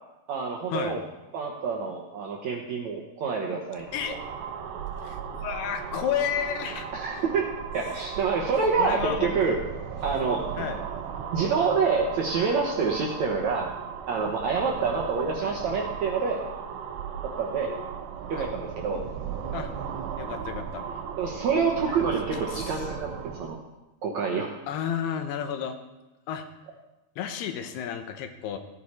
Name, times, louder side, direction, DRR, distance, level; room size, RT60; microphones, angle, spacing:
voice 1, 0.3-1.0 1.3-4.1 6.9-7.5 7.7-9.6 10.0-10.8 11.3-13.7 14.1-16.4 17.2-17.7 18.3-19.0 21.2-23.6 24.0-24.5, right 5 dB, 70° right, 0 dB, 1.8 m, -27 dB
sound 1, 3.7-23.6, right 7 dB, 85° right, 3.2 m, -36 dB
voice 2, 5.0-7.2 8.8-9.6 10.6-10.8 15.4-15.6 18.3-18.5 19.5-19.7 20.2-20.8 21.8-22.9 24.7-25.8 26.3-26.4 27.2-28.6, left 8 dB, 85° left, 7 dB, 3.0 m, -32 dB
16.5 x 9.7 x 4.3 m, 1.0 s
omnidirectional pair, 4.6 m